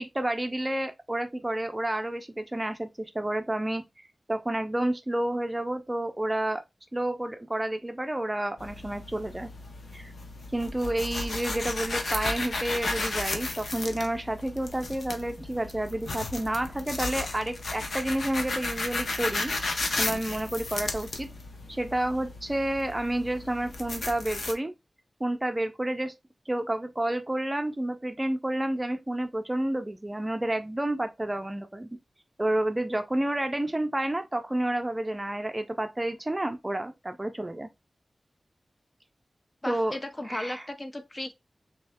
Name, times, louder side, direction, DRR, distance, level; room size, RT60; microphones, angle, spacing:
voice 1, 0.0-3.8 4.3-6.6 6.9-9.5 9.9-10.1 10.5-19.5 20.0-21.3 21.7-24.7 25.2-26.1 26.5-31.9 32.4-37.7 39.7-40.0 40.3-40.7, right 1 dB, 20° right, 0.5 m, -30 dB
sound 1, 8.6-24.5, left 2 dB, 85° left, 0.8 m, -34 dB
voice 2, 39.6-41.3, left 1 dB, 30° left, 0.6 m, -35 dB
3.5 x 3.2 x 3.5 m
wide cardioid pair, 90°, 0 cm